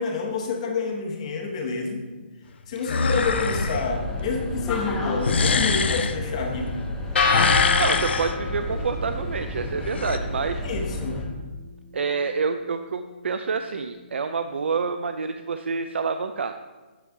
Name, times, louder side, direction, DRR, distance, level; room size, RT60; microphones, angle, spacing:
voice 1, 0.0-2.1 2.7-6.7 10.6-11.3, left 4 dB, 35° left, 2 dB, 0.9 m, -28 dB
sound 1, 2.9-3.8 5.2-6.2 7.2-8.4 9.8-10.2, left 5 dB, 70° left, 0.6 m, -23 dB
sound 2, 3.2-11.2, left 1 dB, 10° left, 0.7 m, -32 dB
sound 3, 7.1-15.3, left 4 dB, 90° left, 1.9 m, -32 dB
voice 2, 7.8-10.6 11.9-16.5, right 5 dB, 85° right, 9 dB, 0.4 m, -27 dB
8.7 x 3.9 x 4.6 m, 1.3 s
hypercardioid pair, 170°, 6 cm